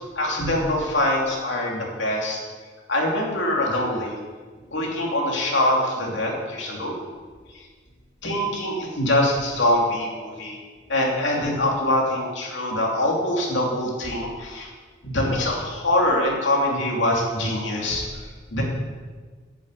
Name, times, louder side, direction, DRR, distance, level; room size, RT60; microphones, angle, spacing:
voice 1, 0.1-2.4 2.9-4.2 4.7-7.0 7.5-7.6 8.2-10.6 10.9-14.7 15.0-18.0 18.5-18.6, left 1 dB, 65° left, -2 dB, 3.0 m, -24 dB
10.5 x 7.5 x 8.2 m, 1.5 s
head